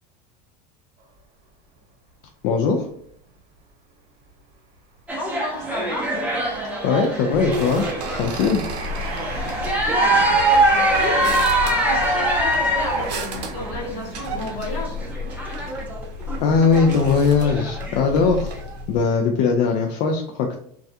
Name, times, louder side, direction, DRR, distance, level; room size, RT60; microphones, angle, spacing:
sound 1, 1.0-1.2 1.7-1.8 3.0-3.1 3.4-3.6 4.3-17.0 17.5-17.7, right 3 dB, 45° right, 1.0 m, -38 dB
voice 1, 2.4-2.9 6.8-8.6 16.4-18.5 18.9-20.6, left 5 dB, 50° left, 2 dB, 0.4 m, -20 dB
voice 2, 5.1-6.1 9.9-15.0, left 2 dB, 70° left, 0 dB, 0.9 m, -33 dB
sound 2, 5.1-8.5 8.8-18.2 18.5-18.7, right 1 dB, 5° right, 0.6 m, -23 dB
sound 3, 7.3-19.0, left 1 dB, 85° right, 0.5 m, -33 dB
2.3 x 2.1 x 2.7 m, 0.67 s
supercardioid pair, 110°, 21 cm